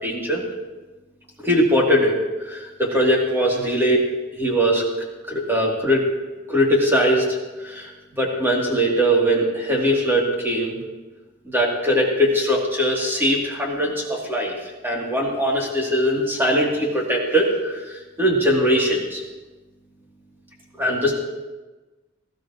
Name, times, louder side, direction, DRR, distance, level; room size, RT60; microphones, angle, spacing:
voice 1, 0.0-0.4 1.4-2.2 2.4-4.0 4.3-4.8 5.3-6.0 6.5-10.8 11.5-14.5 14.8-19.2 20.8-21.1, equal, 10° right, -3 dB, 2.7 m, -21 dB
19.0 x 15.0 x 3.0 m, 1.2 s
head